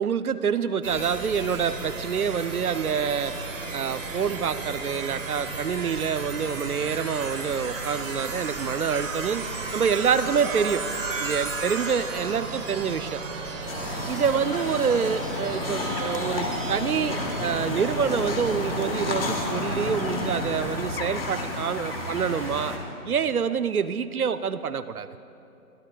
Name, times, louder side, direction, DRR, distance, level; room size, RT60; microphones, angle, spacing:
voice 1, 0.0-3.3 3.7-10.8 11.2-13.2 14.1-22.8 23.1-25.1, right 6 dB, 70° right, 13 dB, 0.7 m, -27 dB
sound 1, 0.8-20.8, right 3 dB, 55° right, 1.9 m, -34 dB
sound 2, 10.0-22.8, right 2 dB, 30° right, 1.8 m, -42 dB
sound 3, 13.7-22.8, left 2 dB, 40° left, 1.4 m, -32 dB
23.0 x 12.5 x 2.3 m, 2.7 s
figure-of-eight pair, 150°, 46 cm